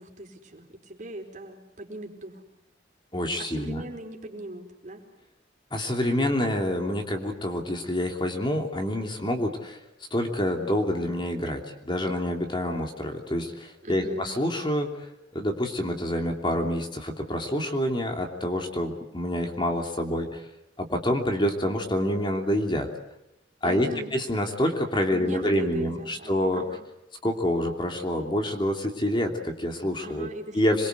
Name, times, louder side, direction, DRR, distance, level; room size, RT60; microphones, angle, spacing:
voice 1, 0.0-2.4 3.4-5.0 13.8-14.3 23.6-24.1 25.1-26.8 30.0-30.6 30.8-30.9, right 1 dB, 40° right, 2 dB, 4.6 m, -38 dB
voice 2, 3.1-3.8 5.7-9.8 10.1-20.5 20.8-22.9 23.6-26.6 27.2-30.3 30.5-30.9, left 1 dB, 25° left, 3 dB, 2.9 m, -27 dB
27.0 x 22.5 x 8.1 m, 0.84 s
head